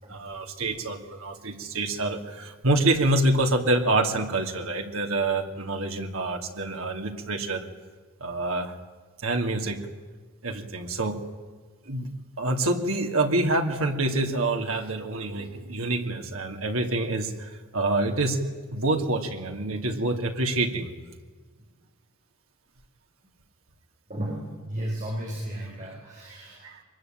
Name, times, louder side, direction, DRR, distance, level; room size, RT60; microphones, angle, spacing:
voice 1, 0.1-7.7 8.2-8.7 9.2-9.8 10.4-11.2 11.9-12.1 12.4-18.4 18.7-20.9 25.8-25.9 26.6-26.8, right 2 dB, 80° right, 3 dB, 2.7 m, -26 dB
voice 2, 24.1-26.8, right 1 dB, 35° right, -2 dB, 5.6 m, -34 dB
24.0 x 22.0 x 9.0 m, 1.5 s
head